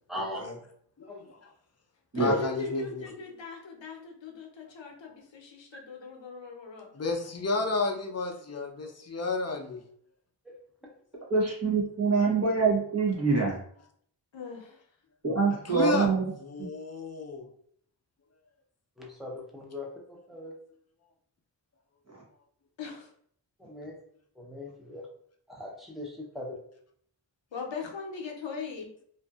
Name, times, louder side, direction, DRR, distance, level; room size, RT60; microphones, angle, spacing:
voice 1, 0.1-0.4 1.1-1.2 10.5-10.6 19.0-20.5 23.7-24.0 24.4-25.1 25.5-26.6, left 1 dB, ahead, -2 dB, 0.7 m, -40 dB
voice 2, 1.0-1.4 2.2-3.0 6.9-9.8 15.6-16.1 16.4-17.5, left 3 dB, 35° left, 2 dB, 0.5 m, -31 dB
voice 3, 2.1-6.9 7.3-7.7 14.3-14.8 22.8-23.1 27.5-28.9, left 5 dB, 80° left, 2 dB, 0.6 m, -40 dB
voice 4, 11.3-13.6 15.2-16.3 16.6-16.7, right 4 dB, 35° right, -4 dB, 0.9 m, -25 dB
2.6 x 2.5 x 2.3 m, 0.63 s
wide cardioid pair, 50°, 44 cm